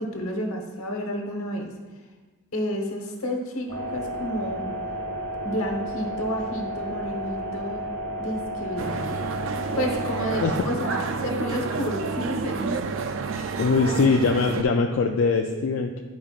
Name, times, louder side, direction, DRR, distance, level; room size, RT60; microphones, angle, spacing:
voice 1, 0.0-1.7 2.5-4.7 5.4-7.8 8.2-9.2 9.8-12.8 13.3-14.0, equal, 85° left, 2 dB, 1.1 m, -30 dB
sound 1, 3.7-10.6, right 1 dB, 20° left, 1.7 m, -32 dB
sound 2, 8.8-14.6, right 4 dB, 65° right, 0.4 m, -30 dB
voice 2, 13.6-16.0, left 4 dB, 70° left, 2 dB, 0.4 m, -22 dB
10.0 x 5.1 x 2.4 m, 1.3 s
head